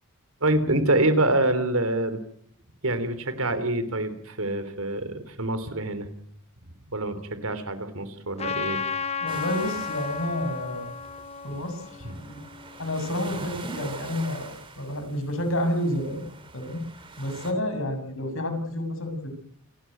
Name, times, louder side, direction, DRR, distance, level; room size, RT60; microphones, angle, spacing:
voice 1, 0.4-2.2 2.8-6.1 6.9-8.8 12.0-12.3, right 2 dB, 75° right, 11 dB, 3.5 m, -26 dB
Trumpet, 8.4-13.0, left 5 dB, 30° left, 0.9 m, -33 dB
voice 2, 9.2-10.9 11.4-12.4 12.8-16.2 16.5-16.8 17.2-19.3, left 1 dB, 65° left, 6 dB, 7.3 m, -30 dB
sound 1, 9.3-17.5, right 3 dB, 25° right, 2.9 m, -44 dB
28.0 x 13.5 x 9.3 m, 0.67 s
head